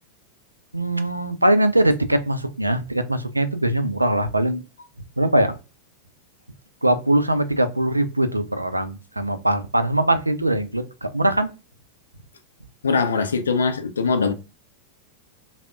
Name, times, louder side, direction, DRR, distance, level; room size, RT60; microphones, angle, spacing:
voice 1, 0.7-4.6 5.2-5.6 6.8-11.5, right 1 dB, 85° right, 0.3 m, -21 dB
voice 2, 12.8-14.3, left 4 dB, 70° left, 0.4 m, -21 dB
3.4 x 2.0 x 2.3 m
figure-of-eight pair, 90°, 0 cm